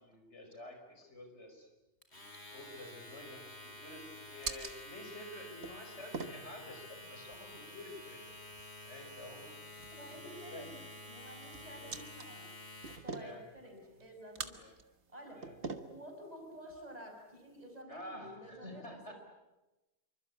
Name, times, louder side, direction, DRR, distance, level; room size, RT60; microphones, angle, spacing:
voice 1, 0.0-1.7 2.5-8.3 8.8-9.5 10.1-10.7 11.7-12.0 13.1-13.4 13.8-13.9 14.6-14.7 15.4-15.6 17.9-19.1, left 1 dB, 90° left, 4 dB, 5.5 m, -50 dB
Domestic sounds home sounds, 2.0-13.2, left 1 dB, 70° left, 4.6 m, -50 dB
sound 1, 2.5-17.8, right 4 dB, 80° right, 1.8 m, -49 dB
voice 2, 9.9-10.8 11.1-12.5 13.0-14.6 15.1-19.1, equal, 35° right, 2 dB, 5.5 m, -51 dB
27.0 x 24.5 x 8.4 m, 1.0 s
omnidirectional pair, 1.1 m